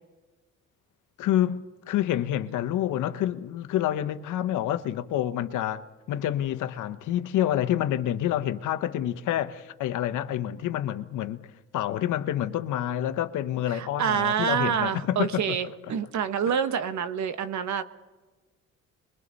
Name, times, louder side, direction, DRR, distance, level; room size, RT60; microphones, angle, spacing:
voice 1, 1.2-1.6 1.9-5.8 6.1-11.4 11.7-15.6, left 12 dB, 85° left, 1.1 m, -28 dB
voice 2, 13.7-17.8, right 8 dB, 65° right, 1.3 m, -27 dB
30.0 x 22.5 x 4.1 m
cardioid pair, 90°, 30 cm